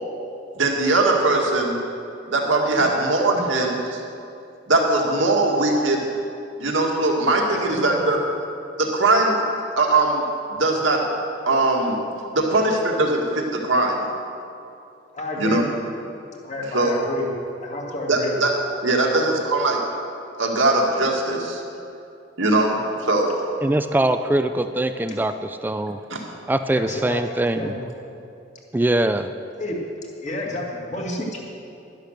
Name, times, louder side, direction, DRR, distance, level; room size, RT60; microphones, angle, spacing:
voice 1, 0.5-1.8 2.3-4.0 4.7-6.0 6.6-8.2 8.8-9.5 9.8-10.2 10.5-11.1 11.5-12.0 12.3-14.1 15.4-15.6 16.6-17.1 18.1-18.5 18.8-19.8 20.4-21.6 22.4-23.3 26.1-26.3, right 2 dB, 85° right, 0 dB, 2.0 m, -20 dB
voice 2, 15.1-15.6 16.4-17.3 17.6-18.4 19.0-19.3 21.7-21.8 25.1-25.2 26.7-27.2 27.6-27.8 29.6-29.8 30.2-31.4, left 2 dB, 40° left, -1 dB, 2.0 m, -30 dB
voice 3, 23.6-26.0 26.5-27.8 28.7-29.3, right 1 dB, 10° right, 9 dB, 0.3 m, -22 dB
12.0 x 10.5 x 6.6 m, 2.6 s
head